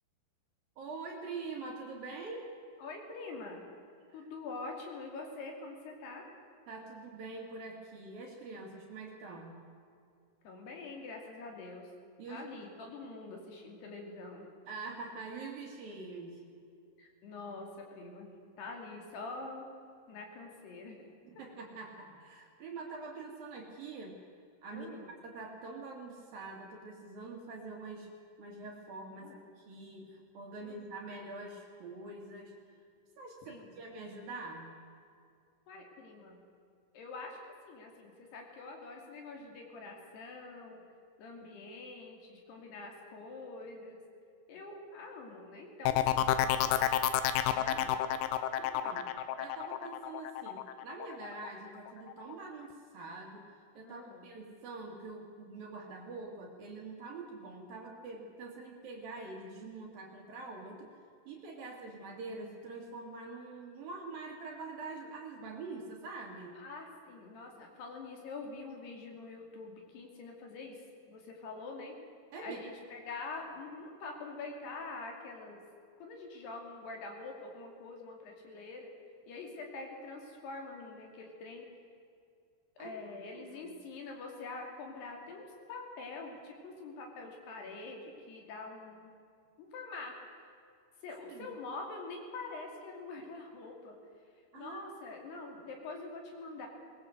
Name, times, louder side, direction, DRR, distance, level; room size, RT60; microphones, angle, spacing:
voice 1, 0.8-2.5 4.1-4.3 6.7-9.6 12.2-12.5 14.7-16.4 21.3-24.2 24.6-24.9 25.2-28.1 28.4-32.6 33.2-34.7 47.6-47.9 48.8-61.0 61.3-66.6 72.3-72.6 82.8-83.7 91.3-91.5 94.5-94.8, right 3 dB, 55° right, 0 dB, 3.7 m, -45 dB
voice 2, 2.8-3.7 4.1-6.3 10.4-11.9 12.3-14.5 17.0-19.7 20.1-21.1 24.7-25.1 29.2-29.4 30.6-30.9 33.5-33.8 35.7-36.4 36.9-37.4 37.6-40.8 41.2-44.0 44.5-46.8 47.4-47.9 48.4-48.8 53.8-54.3 61.6-61.7 66.6-70.8 71.1-71.9 72.4-75.6 76.0-78.9 79.3-81.7 82.8-89.1 89.6-90.1 91.0-94.0 94.5-96.7, left 3 dB, 60° left, 1 dB, 4.4 m, -45 dB
sound 1, 45.9-51.5 51.9-52.3, left 12 dB, 90° left, 3.5 m, -30 dB
21.0 x 20.5 x 7.9 m, 2.4 s
omnidirectional pair, 5.7 m